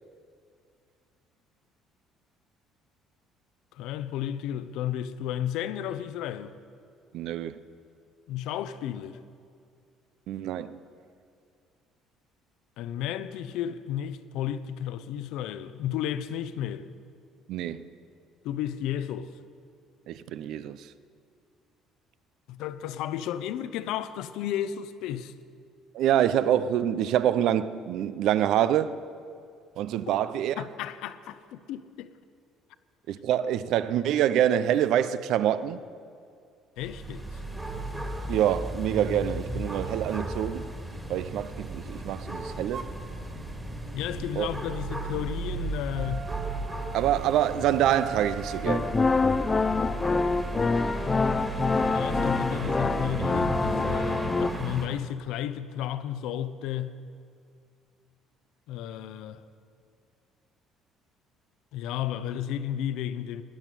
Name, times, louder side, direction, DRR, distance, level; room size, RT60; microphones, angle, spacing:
voice 1, 3.7-6.5 8.3-9.2 12.8-16.9 18.4-19.3 22.5-25.3 30.6-32.1 36.8-37.4 43.9-46.3 51.8-57.0 58.7-59.4 61.7-63.4, left 10 dB, 75° left, 0.7 m, -33 dB
voice 2, 7.1-7.6 10.3-10.8 17.5-17.9 20.1-20.9 25.9-29.0 29.8-30.6 33.1-35.8 38.3-40.7 41.1-42.9 44.4-44.5 46.9-49.0, right 11 dB, 65° right, 0.6 m, -26 dB
sound 1, 36.8-54.9, right 2 dB, 10° right, 2.0 m, -35 dB
sound 2, 42.7-43.0 45.9-53.3, right 7 dB, 35° right, 0.8 m, -42 dB
sound 3, 48.7-54.5, left 4 dB, 20° left, 0.4 m, -26 dB
12.5 x 10.0 x 9.2 m
cardioid pair, 140°, 0 cm